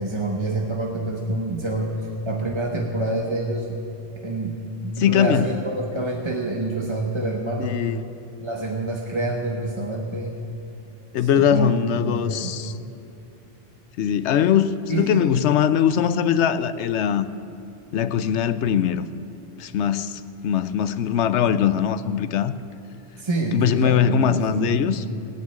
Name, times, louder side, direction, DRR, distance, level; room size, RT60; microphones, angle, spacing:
voice 1, 0.0-3.8 4.2-7.8 8.4-10.4 11.2-12.6 14.9-15.3 23.2-25.1, right 2 dB, 25° right, 0 dB, 1.0 m, -27 dB
voice 2, 5.0-5.5 7.6-8.0 11.1-12.7 14.0-17.3 17.9-19.1 19.6-22.5 23.5-25.0, left 9 dB, 80° left, 12 dB, 0.9 m, -21 dB
19.5 x 7.3 x 8.7 m, 2.7 s
omnidirectional pair, 1.2 m